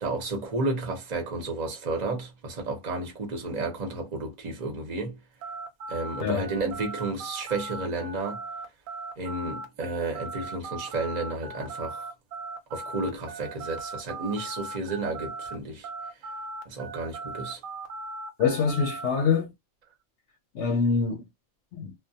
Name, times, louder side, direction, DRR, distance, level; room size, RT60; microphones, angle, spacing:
voice 1, 0.0-5.2 5.9-8.5 9.2-12.1 12.7-15.9 16.2-16.3 16.7-17.6, right 3 dB, 35° right, 0.8 m, -32 dB
sound 1, 5.4-15.6 15.8-19.1, right 3 dB, 90° right, 1.0 m, -38 dB
voice 2, 18.4-19.5 20.5-21.2 21.7-21.9, left 5 dB, 65° left, 0.8 m, -25 dB
2.2 x 2.2 x 2.6 m
omnidirectional pair, 1.4 m